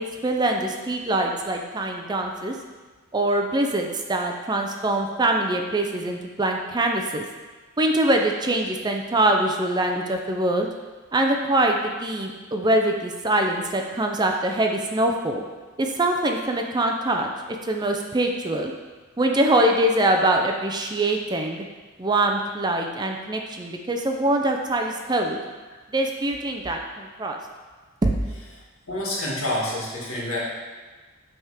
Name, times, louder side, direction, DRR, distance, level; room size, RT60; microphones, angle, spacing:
voice 1, 0.0-2.6 3.1-7.2 7.8-10.7 11.1-15.4 15.8-17.3 17.6-18.7 19.2-21.6 22.0-25.4 25.9-27.4 28.0-28.2, right 1 dB, 20° right, 2 dB, 0.4 m, -23 dB
voice 2, 28.9-30.4, left 1 dB, 70° left, -5 dB, 2.0 m, -27 dB
8.0 x 3.6 x 4.9 m, 1.3 s
head